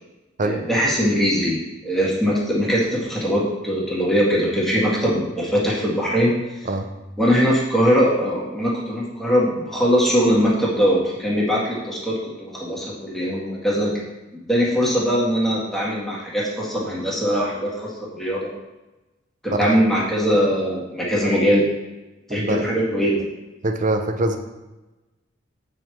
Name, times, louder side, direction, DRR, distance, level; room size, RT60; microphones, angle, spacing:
voice 1, 0.4-1.6 1.8-6.3 6.6-6.7 7.2-14.0 14.3-18.5 19.4-21.7 22.3-23.2, equal, ahead, -6 dB, 1.8 m, -21 dB
voice 2, 22.4-22.7 23.6-24.4, right 2 dB, 45° right, 6 dB, 0.7 m, -23 dB
7.9 x 4.9 x 4.5 m, 1.1 s
head